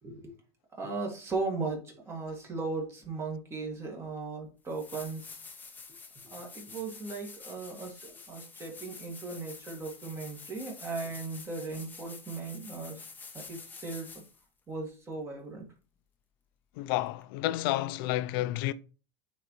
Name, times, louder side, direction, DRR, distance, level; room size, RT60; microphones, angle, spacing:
voice 1, 0.0-0.3 0.7-5.4 6.3-13.0 13.3-14.2 14.7-15.7, right 3 dB, 20° right, 2.2 m, -37 dB
sound 1, 4.2-4.3 4.7-14.4 17.2-17.3, left 4 dB, 15° left, 0.9 m, -48 dB
voice 2, 16.8-18.7, left 15 dB, 60° left, 0.5 m, -30 dB
8.8 x 4.2 x 3.2 m
supercardioid pair, 145°, 13 cm